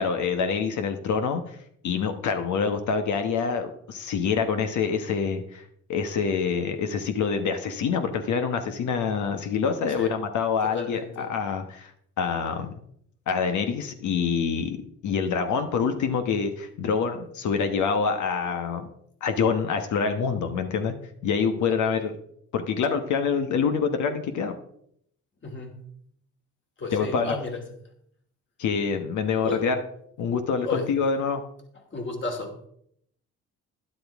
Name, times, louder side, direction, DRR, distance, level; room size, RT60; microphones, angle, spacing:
voice 1, 0.0-1.6 1.8-5.6 5.9-11.9 12.2-12.8 13.3-18.9 19.2-21.0 21.2-22.1 22.5-24.6 26.9-27.4 28.6-29.8 30.2-31.4, left 6 dB, 75° left, 7 dB, 1.2 m, -26 dB
voice 2, 10.6-11.3 21.7-22.0 25.4-25.8 26.8-27.6 29.4-29.6 30.6-30.9 31.9-32.7, left 4 dB, 40° left, 3 dB, 2.7 m, -33 dB
12.0 x 10.5 x 3.6 m, 0.69 s
cardioid pair, 90°, 30 cm